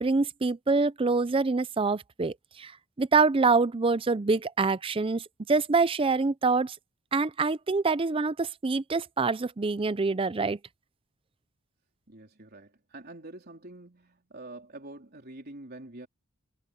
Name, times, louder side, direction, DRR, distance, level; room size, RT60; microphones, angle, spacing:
voice 1, 0.0-2.7 3.0-6.8 7.1-10.6, right 4 dB, 25° right, 0.5 m, -25 dB
voice 2, 12.1-16.1, right 2 dB, 50° right, 3.8 m, -46 dB
head